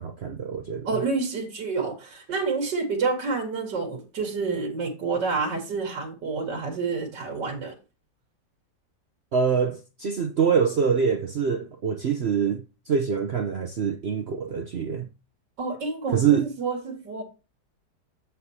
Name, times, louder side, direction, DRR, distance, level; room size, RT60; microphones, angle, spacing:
voice 1, 0.0-0.9 9.3-12.6 12.9-15.1 16.1-16.5, right 6 dB, 55° right, 0.7 m, -24 dB
voice 2, 0.9-7.7 15.6-17.2, right 4 dB, 85° right, 2.4 m, -28 dB
7.9 x 7.8 x 2.8 m
omnidirectional pair, 1.9 m